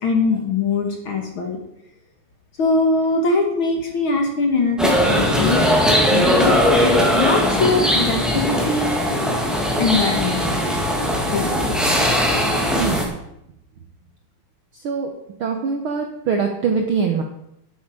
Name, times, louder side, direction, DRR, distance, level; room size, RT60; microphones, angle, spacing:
voice 1, 0.0-1.6 2.6-5.7 6.1-9.0 9.8-10.4 11.3-11.6, left 3 dB, 50° left, 2 dB, 1.8 m, -22 dB
sound 1, 4.8-13.0, equal, ahead, 1.2 m, -19 dB
voice 2, 12.7-13.1 14.7-15.1 15.4-17.2, right 5 dB, 70° right, 3 dB, 1.3 m, -23 dB
12.5 x 7.8 x 5.0 m, 0.80 s
omnidirectional pair, 3.5 m